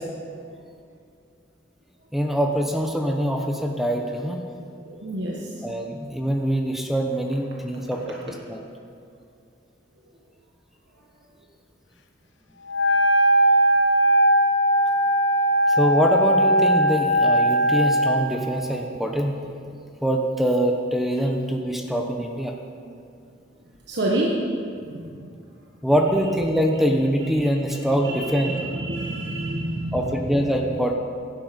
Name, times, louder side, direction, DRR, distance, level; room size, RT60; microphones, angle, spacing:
voice 1, 2.1-4.4 5.6-8.6 15.7-19.3 20.0-22.5 25.8-28.5 29.9-30.9, equal, ahead, 2 dB, 0.9 m, -24 dB
voice 2, 4.8-5.6 8.1-8.2 8.4-8.8 23.9-24.5 24.8-25.3 27.4-27.8 28.0-30.1, right 1 dB, 65° right, -3 dB, 1.4 m, -29 dB
Wind instrument woodwind instrument, 12.7-18.3, right 1 dB, 80° left, 0.9 m, -19 dB
16.5 x 12.0 x 5.2 m, 2.4 s
head